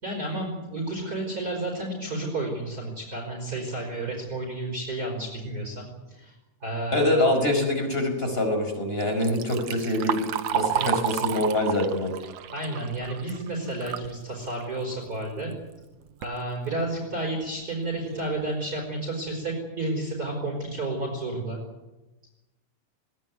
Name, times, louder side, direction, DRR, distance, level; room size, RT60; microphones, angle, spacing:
voice 1, 0.0-6.3 6.6-7.4 10.7-11.1 12.5-15.5 16.2-21.6, right 2 dB, 25° right, -1 dB, 5.4 m, -31 dB
voice 2, 6.9-10.2 10.5-12.2, left 1 dB, 15° left, 5 dB, 5.1 m, -24 dB
Liquid, 9.0-14.1 14.5-14.6 15.5-15.6 16.0-16.4 17.0-17.1 17.6-17.7 18.1-18.4, right 11 dB, 65° right, 1.8 m, -31 dB
20.5 x 18.5 x 9.6 m, 1.0 s
omnidirectional pair, 3.9 m